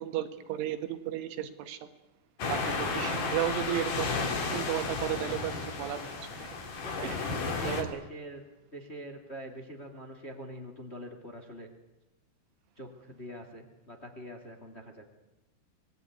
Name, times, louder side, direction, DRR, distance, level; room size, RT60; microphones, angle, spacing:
voice 1, 0.0-1.9 2.5-4.2 4.5-6.5 7.0-7.2 7.6-8.0, right 12 dB, 85° right, 9 dB, 4.0 m, -34 dB
sound 1, 2.4-7.8, left 4 dB, 50° left, 4.2 m, -33 dB
voice 2, 2.5-3.3 5.4-5.6 6.7-8.4 8.7-11.7 12.8-15.0, equal, 20° left, 4 dB, 1.8 m, -44 dB
25.5 x 20.5 x 9.5 m, 0.99 s
omnidirectional pair, 5.4 m